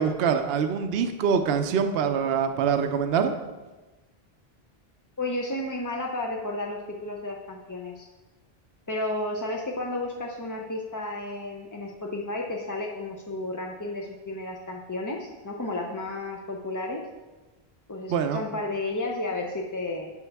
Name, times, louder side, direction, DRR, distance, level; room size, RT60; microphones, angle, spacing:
voice 1, 0.0-3.3 18.1-18.4, right 7 dB, 75° right, 8 dB, 0.8 m, -24 dB
voice 2, 5.2-8.1 8.9-17.0 17.9-20.1, left 2 dB, 25° left, 0 dB, 0.5 m, -32 dB
10.5 x 5.7 x 3.4 m, 1.2 s
omnidirectional pair, 1.1 m